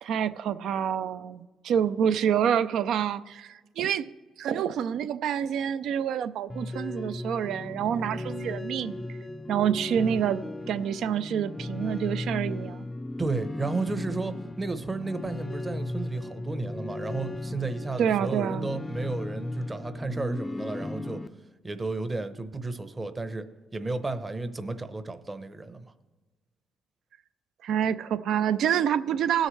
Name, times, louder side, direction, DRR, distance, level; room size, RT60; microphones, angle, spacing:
voice 1, 0.0-4.1 4.4-9.0 9.5-10.4 10.7-12.9 18.0-18.7 27.6-29.5, right 8 dB, 75° right, 14 dB, 0.4 m, -27 dB
sound 1, 6.5-21.3, left 2 dB, 20° left, 0.4 m, -36 dB
voice 2, 13.2-21.2 21.6-23.5 23.7-25.8, right 3 dB, 25° right, 10 dB, 0.8 m, -33 dB
18.5 x 6.4 x 3.2 m, 1.3 s
cardioid pair, 90°, 0 cm